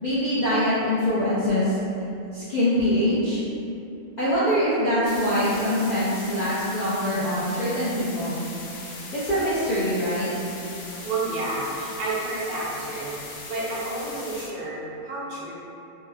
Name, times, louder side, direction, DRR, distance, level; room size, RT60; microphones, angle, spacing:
voice 1, 0.0-1.8 2.3-3.4 4.2-8.4 9.1-10.3, equal, 55° left, -12 dB, 0.5 m, -24 dB
sound 1, 5.1-14.5, left 3 dB, 80° left, 1.1 m, -39 dB
voice 2, 11.0-15.5, right 2 dB, 45° right, -6 dB, 0.5 m, -30 dB
3.3 x 2.1 x 3.4 m, 2.8 s
omnidirectional pair, 1.5 m